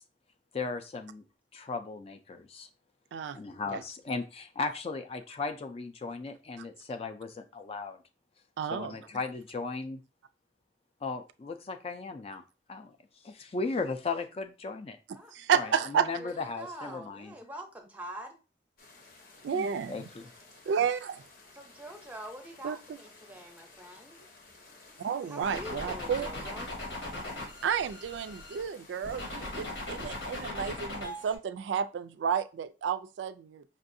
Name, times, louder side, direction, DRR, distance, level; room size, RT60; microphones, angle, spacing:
voice 1, 0.5-1.2 1.5-2.7 3.3-8.0 8.7-10.0 11.0-12.4 12.7-12.9 13.2-15.0 15.5-17.3 19.5-20.3, left 4 dB, 35° left, 0.4 m, -36 dB
voice 2, 8.6-8.9 15.3-16.1 19.4-20.1 20.7-21.2 22.6-22.8 25.0-26.3 27.6-33.6, right 7 dB, 85° right, 0.3 m, -31 dB
voice 3, 15.1-15.9 16.2-18.4 21.5-24.2 25.3-26.7, right 1 dB, 10° right, 0.6 m, -45 dB
sound 1, 18.8-30.5, left 3 dB, 55° left, 0.8 m, -55 dB
sound 2, 25.4-28.6 29.0-31.3, left 2 dB, 80° left, 1.2 m, -39 dB
5.3 x 2.5 x 2.6 m
head